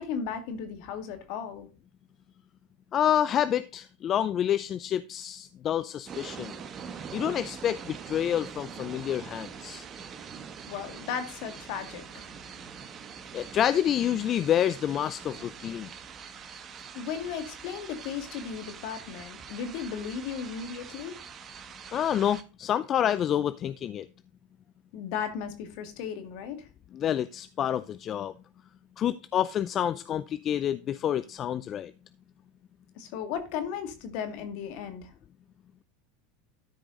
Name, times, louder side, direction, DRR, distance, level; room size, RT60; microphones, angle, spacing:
voice 1, 0.0-1.7 10.7-12.3 16.9-21.2 24.9-26.7 33.0-35.1, left 7 dB, 65° left, 2.0 m, -35 dB
voice 2, 2.9-6.5 7.1-9.9 13.3-15.9 21.9-24.1 26.9-28.3 29.0-31.9, left 10 dB, 40° left, 0.5 m, -28 dB
sound 1, 6.1-22.4, right 7 dB, 35° right, 1.2 m, -44 dB
13.0 x 5.0 x 3.9 m
hypercardioid pair, 95°, 0 cm